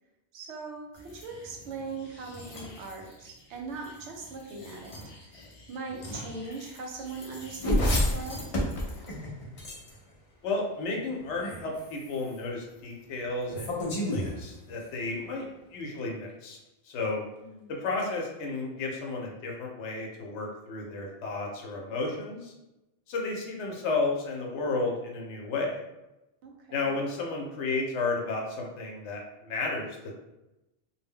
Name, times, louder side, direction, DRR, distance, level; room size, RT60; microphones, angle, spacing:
voice 1, 0.3-5.0 5.2-8.6 17.4-17.7 26.4-27.0, right 4 dB, 80° right, 1 dB, 0.9 m, -40 dB
sound 1, 0.9-10.1 11.2-12.4 13.4-15.0, left 1 dB, 50° left, 0.4 m, -34 dB
voice 2, 10.4-15.5 15.7-16.6 16.8-17.2 17.8-22.5 23.1-25.8 26.7-30.1, left 3 dB, 80° left, 0 dB, 0.9 m, -32 dB
2.2 x 2.1 x 3.5 m, 0.96 s
omnidirectional pair, 1.2 m